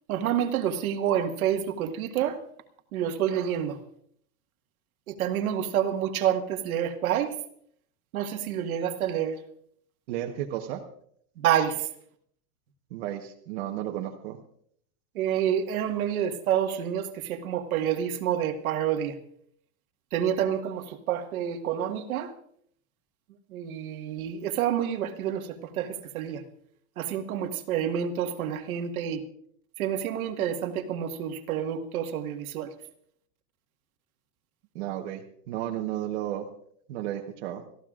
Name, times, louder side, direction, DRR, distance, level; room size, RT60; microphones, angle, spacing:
voice 1, 0.1-2.4 2.9-3.8 5.1-7.4 8.1-9.4 11.4-11.9 15.2-19.2 20.1-22.3 23.5-26.4 27.0-29.2 29.8-32.7, right 9 dB, 90° right, 6 dB, 1.8 m, -28 dB
voice 2, 10.1-10.8 12.9-14.4 34.7-36.5 36.9-37.6, right 12 dB, 50° right, 1 dB, 1.3 m, -33 dB
29.5 x 14.5 x 2.5 m, 0.65 s
supercardioid pair, 175°, 41 cm